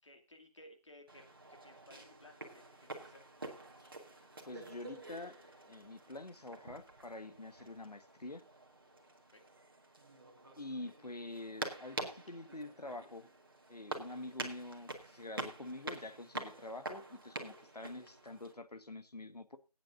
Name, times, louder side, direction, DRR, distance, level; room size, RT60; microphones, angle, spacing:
voice 1, 0.0-3.2 7.8-7.9 9.3-9.4, left 1 dB, 50° left, 2.4 m, -59 dB
sound 1, 1.1-18.5, right 2 dB, 35° right, 1.6 m, -47 dB
voice 2, 4.4-5.4 5.7-8.4 10.6-13.3 13.7-19.6, left 2 dB, 80° left, 1.4 m, -46 dB
20.5 x 8.9 x 2.6 m
figure-of-eight pair, 170°, 20 cm